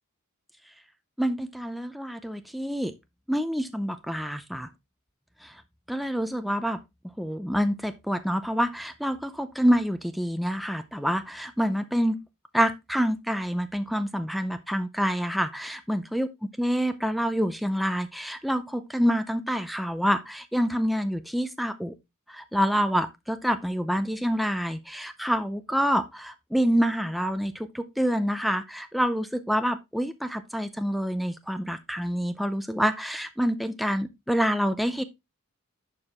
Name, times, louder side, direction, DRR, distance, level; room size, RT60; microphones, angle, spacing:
voice 1, 1.2-2.9 3.3-4.7 5.4-5.6 5.9-6.8 7.2-12.2 12.5-16.3 16.6-21.9 22.3-35.0, equal, ahead, 0.5 m, -27 dB
11.5 x 4.6 x 3.5 m
head